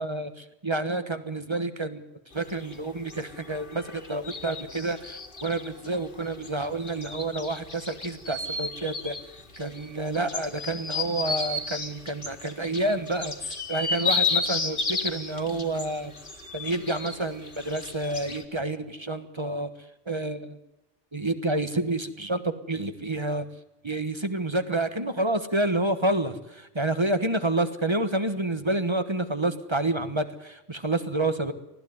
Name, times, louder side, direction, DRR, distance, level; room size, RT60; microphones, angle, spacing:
voice 1, 0.0-2.0 2.3-9.2 9.6-16.1 16.5-19.7 20.1-20.6 21.1-23.4 23.8-31.5, right 2 dB, 25° right, 10 dB, 1.3 m, -29 dB
sound 1, 2.3-18.4, left 4 dB, 45° left, 2.2 m, -33 dB
20.0 x 15.0 x 9.6 m, 0.89 s
omnidirectional pair, 1.2 m